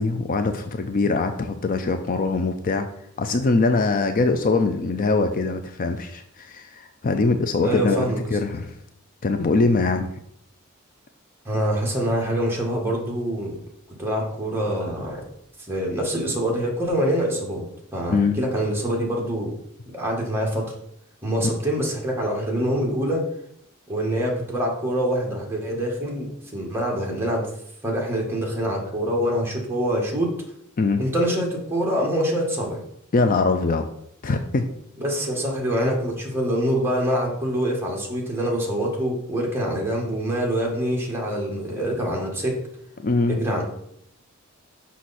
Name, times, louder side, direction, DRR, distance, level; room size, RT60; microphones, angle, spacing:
voice 1, 0.0-2.9 3.2-8.7 9.2-10.1 18.1-18.4 21.4-21.5 30.8-31.0 33.1-33.9 34.2-34.6 43.0-43.4, left 3 dB, 40° left, 7 dB, 0.5 m, -22 dB
voice 2, 7.6-8.2 11.4-13.6 14.0-15.2 15.6-19.5 19.9-20.7 21.2-23.2 23.9-27.5 27.8-30.3 31.0-32.8 35.0-42.6 43.3-43.6, equal, 10° right, -2 dB, 1.6 m, -25 dB
6.2 x 5.7 x 4.2 m, 0.72 s
head